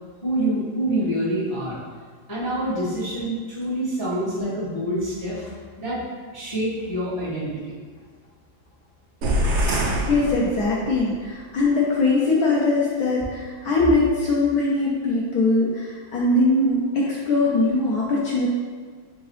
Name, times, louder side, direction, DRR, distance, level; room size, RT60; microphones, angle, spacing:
voice 1, 0.2-1.8 2.3-5.3 5.8-6.0 6.3-7.8, right 1 dB, 20° left, -9 dB, 0.6 m, -26 dB
sound 1, 9.2-11.1, equal, 80° right, 1.3 m, -24 dB
voice 2, 9.7-18.5, left 2 dB, 65° left, -5 dB, 1.0 m, -21 dB
3.8 x 3.8 x 3.0 m, 1.6 s
omnidirectional pair, 2.1 m